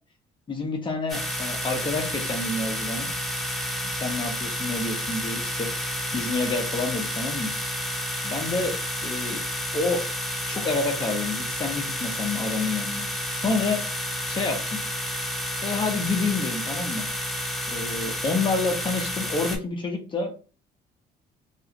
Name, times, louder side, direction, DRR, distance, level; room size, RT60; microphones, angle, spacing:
voice 1, 0.5-3.1 4.0-7.5 8.2-9.4 9.7-10.1 10.5-13.8 14.2-14.8 15.6-17.1 17.7-20.3, left 3 dB, 30° left, 2 dB, 0.7 m, -28 dB
sound 1, 1.1-19.6, equal, ahead, 0.9 m, -30 dB
2.5 x 2.3 x 2.8 m, 0.35 s
cardioid pair, 110°, 17 cm